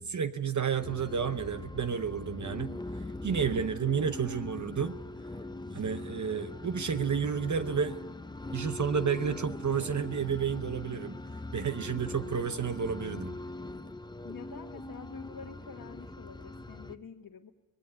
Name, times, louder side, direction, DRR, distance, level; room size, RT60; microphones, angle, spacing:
voice 1, 0.0-5.0 5.7-8.0 8.5-11.2 11.5-13.4, right 7 dB, 50° right, 10 dB, 0.9 m, -31 dB
sound 1, 0.8-17.0, left 2 dB, 10° left, 0.7 m, -41 dB
voice 2, 14.2-17.5, left 5 dB, 60° left, 1 dB, 1.4 m, -47 dB
19.5 x 16.5 x 9.6 m, 1.2 s
cardioid pair, 75°, 37 cm